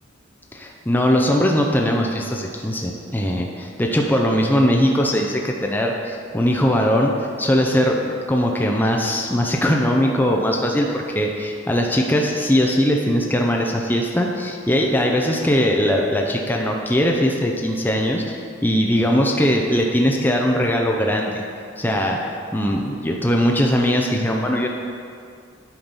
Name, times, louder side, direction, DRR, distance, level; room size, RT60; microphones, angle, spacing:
voice 1, 0.5-21.3 21.8-24.7, equal, 10° left, 0 dB, 0.6 m, -20 dB
8.8 x 5.8 x 5.4 m, 2.3 s
head